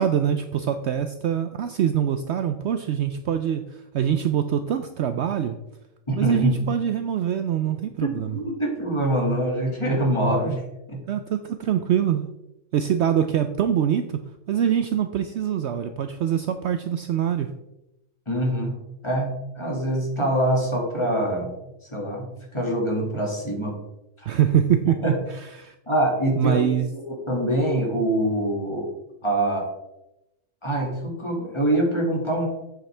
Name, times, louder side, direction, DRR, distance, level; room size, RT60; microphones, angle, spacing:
voice 1, 0.0-5.6 6.2-8.4 10.5-10.6 11.1-12.2 12.7-14.2 14.5-17.5 24.3-25.7 26.3-26.9, right 9 dB, 65° right, 8 dB, 0.7 m, -24 dB
voice 2, 6.1-6.6 8.0-10.6 10.9-11.1 18.3-18.8 19.0-21.5 21.9-23.8 24.2-24.3 25.0-25.2 25.9-26.6 26.9-28.9 29.2-29.7 30.6-32.5, right 1 dB, 20° left, -1 dB, 2.0 m, -24 dB
8.3 x 7.8 x 3.3 m, 0.90 s
omnidirectional pair, 1.4 m